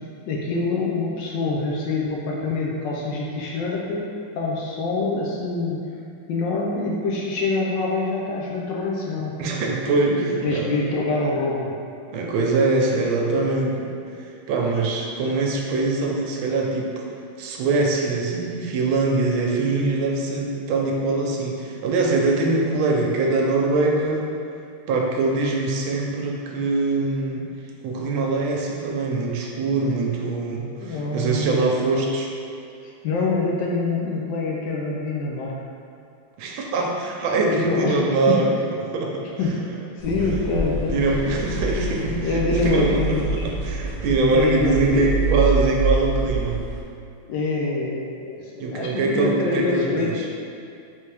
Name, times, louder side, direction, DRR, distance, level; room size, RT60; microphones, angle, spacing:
voice 1, 0.3-4.0 4.3-5.8 6.3-9.4 10.1-11.7 30.8-31.8 33.0-35.5 37.3-38.0 38.3-38.4 39.4-39.6 40.0-41.1 42.2-43.4 44.3-45.1 47.2-50.1, left 3 dB, 75° left, -3 dB, 1.1 m, -25 dB
voice 2, 9.4-10.7 12.1-13.9 14.5-17.0 17.4-24.3 24.9-27.5 27.8-32.3 36.4-38.5 38.8-39.2 40.2-40.3 40.8-46.7 48.6-50.3, right 3 dB, 80° right, -1 dB, 1.4 m, -23 dB
sound 1, 40.0-46.8, right 2 dB, 60° right, 1.1 m, -26 dB
4.1 x 3.4 x 3.3 m, 2.5 s
omnidirectional pair, 2.2 m